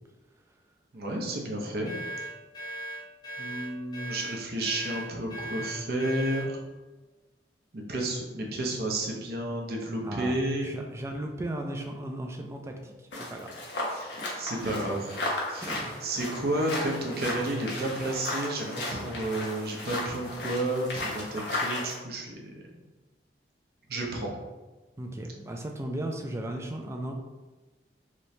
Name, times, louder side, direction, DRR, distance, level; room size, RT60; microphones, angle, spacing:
voice 1, 0.9-1.9 3.4-6.6 7.7-10.8 13.9-15.2 15.5-15.7 16.0-22.5 23.9-24.3, right 1 dB, 60° right, -1 dB, 0.7 m, -31 dB
sound 1, 1.8-6.5, right 1 dB, 25° left, 0.6 m, -38 dB
voice 2, 10.0-14.3 15.6-16.1 25.0-27.1, right 1 dB, 15° right, 3 dB, 0.3 m, -37 dB
sound 2, 13.1-21.9, left 2 dB, 90° left, 0.9 m, -35 dB
3.0 x 2.7 x 3.2 m, 1.2 s
head